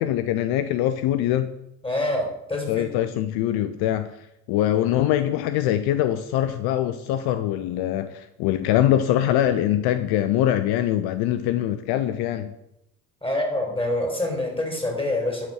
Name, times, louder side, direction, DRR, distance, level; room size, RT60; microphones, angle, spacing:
voice 1, 0.0-1.5 2.7-4.1 4.5-12.5, left 12 dB, 70° left, 0.6 m, -23 dB
voice 2, 1.8-3.0 13.2-15.5, left 1 dB, 15° left, 3.8 m, -26 dB
10.5 x 4.3 x 6.3 m
hypercardioid pair, 55°, 40 cm